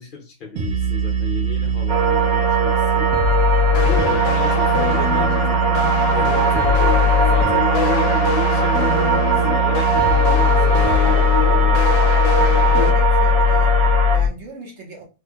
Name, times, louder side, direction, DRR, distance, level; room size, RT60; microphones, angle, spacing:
voice 1, 0.0-3.1 3.8-5.6 6.1-7.0 7.3-11.9, left 5 dB, 50° left, 2 dB, 0.7 m, -32 dB
sound 1, 0.6-14.3, left 2 dB, 85° right, 1.3 m, -19 dB
sound 2, 1.9-14.2, right 5 dB, 35° right, 1.1 m, -21 dB
sound 3, 3.7-12.9, left 8 dB, 75° left, 1.0 m, -26 dB
voice 2, 12.8-15.0, right 2 dB, 55° right, -1 dB, 1.4 m, -38 dB
3.4 x 3.2 x 2.3 m, 0.31 s
omnidirectional pair, 1.5 m